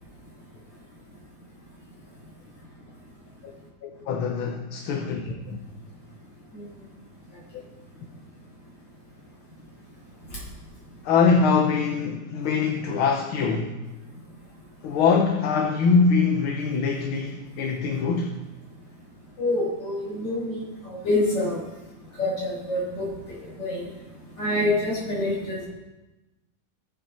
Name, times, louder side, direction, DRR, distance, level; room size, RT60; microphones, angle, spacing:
voice 1, 3.8-5.6 7.5-7.6 11.0-13.8 14.8-18.4, left 5 dB, 80° left, 2 dB, 1.9 m, -23 dB
voice 2, 19.4-20.6 21.0-21.5 22.2-23.0 23.6-23.8 24.4-25.6, left 2 dB, 60° left, -5 dB, 6.1 m, -25 dB
18.0 x 8.1 x 4.4 m, 1.1 s
omnidirectional pair, 2.3 m